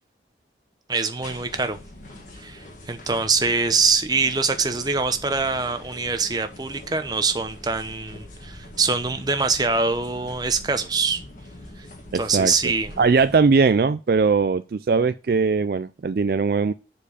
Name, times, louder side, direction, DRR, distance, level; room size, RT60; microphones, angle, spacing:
voice 1, 0.9-1.8 2.4-11.2 12.1-12.9, right 4 dB, 20° right, 0.8 m, -24 dB
sound 1, 1.2-13.4, left 1 dB, 45° left, 2.0 m, -43 dB
voice 2, 12.1-12.5 13.0-16.7, right 4 dB, 55° right, 0.4 m, -20 dB
7.3 x 4.5 x 6.8 m
head